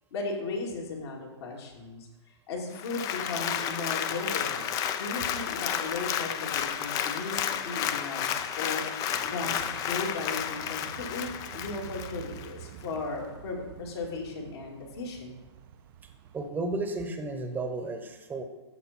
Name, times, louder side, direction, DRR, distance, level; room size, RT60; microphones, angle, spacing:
voice 1, 0.1-2.1 2.5-11.3 11.5-15.4, left 3 dB, 60° left, -2 dB, 2.7 m, -36 dB
Applause, 2.7-12.5 13.0-13.1, left 9 dB, 25° left, 0.5 m, -32 dB
sound 1, 9.1-16.5, right 9 dB, 45° right, 0.6 m, -48 dB
voice 2, 16.0-18.4, right 2 dB, 10° right, 6 dB, 1.0 m, -33 dB
13.5 x 5.1 x 4.4 m, 1.1 s
hypercardioid pair, 130°, 15 cm